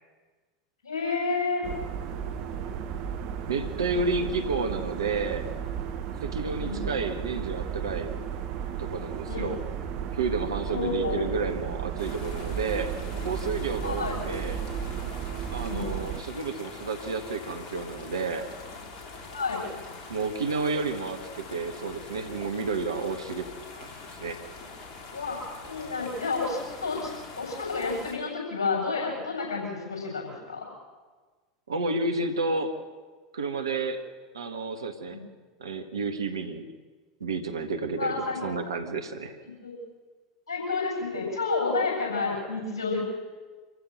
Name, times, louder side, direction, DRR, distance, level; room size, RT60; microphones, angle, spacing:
voice 1, 0.8-1.7 3.8-4.2 6.4-6.8 9.3-9.5 10.7-11.3 13.8-14.2 15.5-15.9 19.3-19.7 25.1-30.6 35.1-35.2 38.0-38.6 39.4-39.8 40.5-43.0, left 4 dB, 70° left, -1 dB, 7.8 m, -30 dB
sound 1, 1.6-16.2, right 8 dB, 50° right, 1.6 m, -34 dB
voice 2, 3.5-5.5 6.2-8.1 8.8-9.6 10.1-12.9 13.2-14.6 15.5-18.5 20.1-23.5 23.8-23.9 24.2-24.4 31.7-32.7 33.3-34.0 34.3-35.2 35.6-36.7 37.2-39.4, right 4 dB, 75° right, 7 dB, 1.7 m, -31 dB
sound 2, 12.0-28.2, left 3 dB, 40° left, 3.7 m, -44 dB
26.0 x 15.0 x 6.7 m, 1.4 s
figure-of-eight pair, 85°, 2 cm